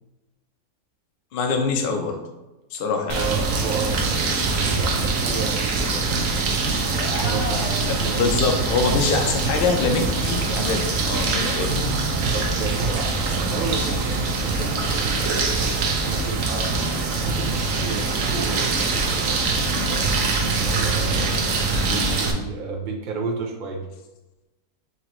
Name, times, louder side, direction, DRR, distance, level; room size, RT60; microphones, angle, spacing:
voice 1, 1.3-2.2 2.7-3.3 8.1-11.7, left 4 dB, 55° left, 3 dB, 0.6 m, -24 dB
sound 1, 3.1-22.3, right 3 dB, 65° right, 1.0 m, -23 dB
voice 2, 3.1-6.5 6.9-8.2 11.4-11.6 12.3-13.1 13.4-15.8 16.0-16.7 17.2-21.2 21.8-23.9, right 4 dB, 80° right, 1 dB, 0.4 m, -32 dB
sound 2, 6.9-8.5, left 2 dB, 90° left, 1.6 m, -33 dB
5.7 x 2.9 x 3.0 m, 1.1 s
omnidirectional pair, 1.7 m